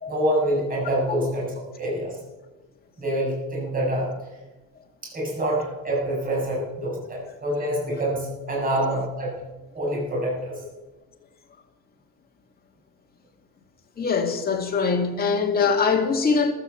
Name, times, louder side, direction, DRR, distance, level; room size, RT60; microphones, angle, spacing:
voice 1, 0.1-2.2 3.0-4.1 5.0-9.3 9.7-10.5, right 1 dB, 25° right, 7.7 m, -26 dB
voice 2, 14.0-16.5, left 5 dB, 30° left, 2.4 m, -22 dB
15.5 x 13.0 x 7.2 m
cardioid pair, 150°, 32 cm